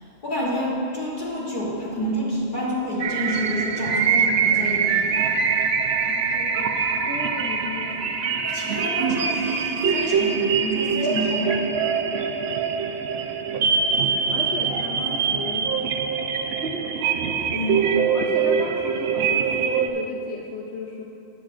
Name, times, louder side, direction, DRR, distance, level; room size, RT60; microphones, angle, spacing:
voice 1, 0.2-5.4 8.4-11.6 17.5-17.8, equal, 45° left, -7 dB, 2.7 m, -28 dB
sound 1, 3.0-19.9, right 6 dB, 75° right, 0.9 m, -23 dB
voice 2, 6.0-8.3 14.1-15.7 17.7-21.0, left 4 dB, 80° left, -2 dB, 1.0 m, -35 dB
19.0 x 8.8 x 2.5 m, 2.8 s
omnidirectional pair, 1.1 m